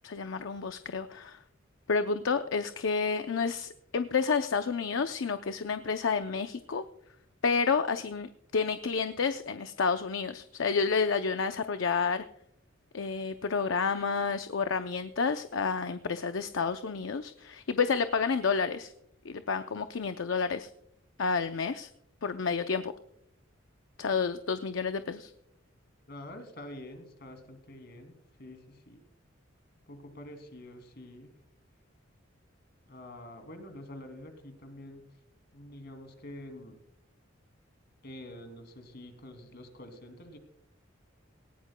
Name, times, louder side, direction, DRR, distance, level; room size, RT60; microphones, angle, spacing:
voice 1, 0.0-1.4 1.9-6.8 7.4-12.2 12.9-18.9 19.2-20.7 21.2-21.9 22.2-22.9 24.0-25.3, left 5 dB, 70° left, 9 dB, 0.6 m, -30 dB
voice 2, 26.1-29.0 29.9-31.3 32.9-35.0 35.5-36.8 38.0-40.4, left 1 dB, 55° left, 6 dB, 2.6 m, -47 dB
18.5 x 17.5 x 2.2 m, 0.73 s
head